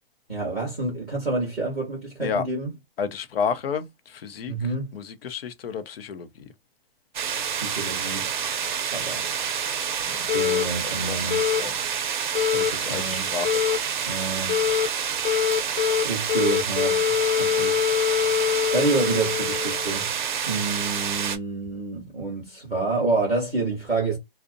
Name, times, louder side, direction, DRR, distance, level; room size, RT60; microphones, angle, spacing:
voice 1, 0.3-2.7 4.5-4.9 7.5-8.3 8.9-9.3 10.3-11.5 12.5-13.3 14.1-14.6 16.0-17.8 18.7-20.1 20.5-24.2, right 3 dB, ahead, 0.4 m, -28 dB
voice 2, 3.0-4.5 4.9-6.5 10.8-11.8 12.5-13.6, left 6 dB, 80° left, 0.6 m, -31 dB
sound 1, 7.1-21.4, right 7 dB, 55° right, 0.5 m, -28 dB
sound 2, 10.3-10.6 11.3-11.6 12.3-12.7 13.4-13.8 14.5-14.9 15.2-16.0 16.3-20.0, left 10 dB, 50° left, 0.9 m, -24 dB
2.5 x 2.0 x 2.5 m
hypercardioid pair, 175°, 29 cm